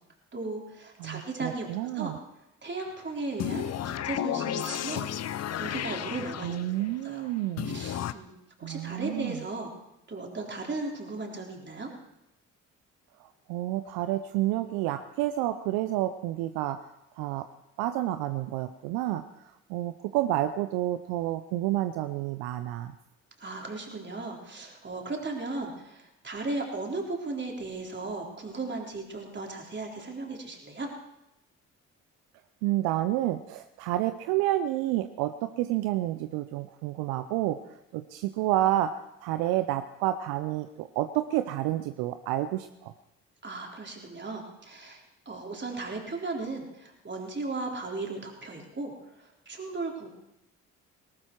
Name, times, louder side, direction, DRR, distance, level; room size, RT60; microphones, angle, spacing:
voice 1, 0.3-1.7 1.9-2.1 2.6-5.1 5.5-6.6 7.0-7.3 7.7-9.7 10.1-11.9 23.4-30.9 43.4-45.0 45.3-48.9 49.2-50.1, right 3 dB, 30° right, 0 dB, 3.8 m, -36 dB
voice 2, 1.0-2.2 6.4-7.8 8.6-9.4 13.5-16.8 17.2-17.5 17.8-19.2 19.7-22.9 32.6-37.6 37.9-38.9 39.2-42.9, right 14 dB, 70° right, 10 dB, 0.7 m, -29 dB
sound 1, 3.4-6.9 7.6-8.1, left 11 dB, 45° left, 0.7 m, -33 dB
18.5 x 12.5 x 4.6 m, 0.88 s
hypercardioid pair, 45°, 37 cm